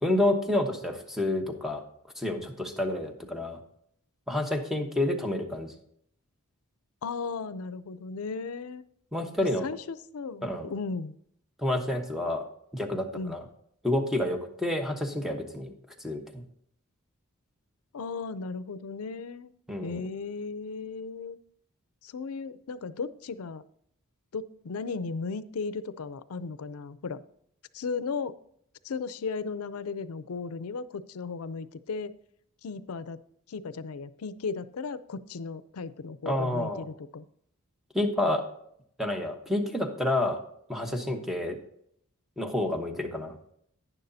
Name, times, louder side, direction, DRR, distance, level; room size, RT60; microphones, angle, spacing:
voice 1, 0.0-1.8 2.2-3.6 4.3-5.7 9.1-9.7 10.4-10.7 11.6-12.4 12.7-13.4 13.8-15.7 16.0-16.4 19.7-20.1 36.2-36.9 37.9-38.4 39.0-40.4 40.7-41.6 42.4-43.3, left 1 dB, ahead, 4 dB, 1.0 m, -29 dB
voice 2, 7.0-8.8 9.6-11.2 13.1-13.4 17.9-19.5 19.8-21.4 22.0-23.6 24.3-27.2 27.7-28.4 28.8-32.1 32.6-33.2 33.5-37.2, left 4 dB, 70° left, 15 dB, 0.5 m, -36 dB
11.0 x 10.0 x 2.7 m, 0.69 s
head